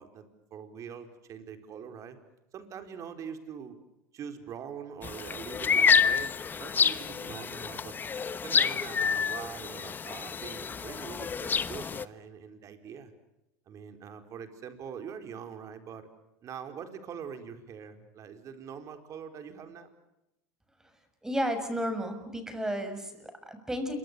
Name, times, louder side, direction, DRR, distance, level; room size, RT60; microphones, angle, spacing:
voice 1, 0.0-2.2 2.5-3.8 4.1-7.9 8.4-13.1 13.7-16.1 16.4-19.9, right 7 dB, 45° right, 7 dB, 4.5 m, -43 dB
sound 1, 5.0-12.0, left 6 dB, 25° left, 1.2 m, -28 dB
voice 2, 21.2-24.0, equal, 5° right, 9 dB, 6.5 m, -32 dB
28.5 x 25.0 x 6.8 m, 0.89 s
supercardioid pair, 105°, 8 cm